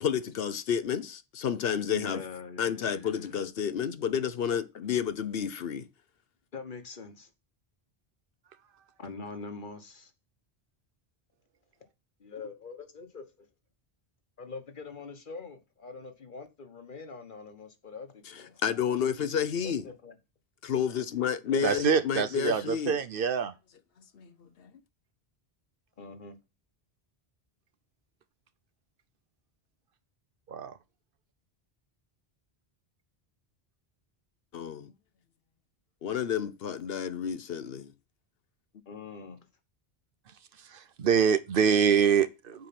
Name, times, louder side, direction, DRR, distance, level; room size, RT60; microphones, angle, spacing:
voice 1, 0.0-2.2 2.6-5.9 18.2-19.9 20.6-23.0 24.1-24.7 34.5-34.9 36.0-37.9, left 8 dB, 70° left, 0.9 m, -30 dB
voice 2, 1.8-3.3 6.5-7.3 9.0-10.1 12.2-13.2 14.4-18.6 19.6-20.1 21.5-22.2 26.0-26.4 38.9-39.4, left 4 dB, 55° left, 1.4 m, -43 dB
voice 3, 21.6-23.5 30.5-30.7 40.7-42.7, right 7 dB, 65° right, 0.8 m, -25 dB
7.9 x 4.8 x 5.9 m
omnidirectional pair, 1.0 m